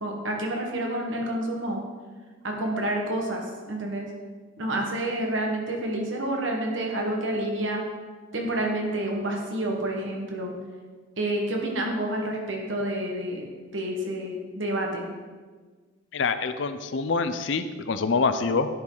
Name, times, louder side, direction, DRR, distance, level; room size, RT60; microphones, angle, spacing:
voice 1, 0.0-1.8 2.4-4.1 4.6-7.8 8.3-10.5 11.2-13.4 13.7-15.1, right 1 dB, 75° right, 1 dB, 1.5 m, -29 dB
voice 2, 16.1-18.7, left 4 dB, 65° left, 10 dB, 0.5 m, -25 dB
10.0 x 5.3 x 4.0 m, 1.4 s
head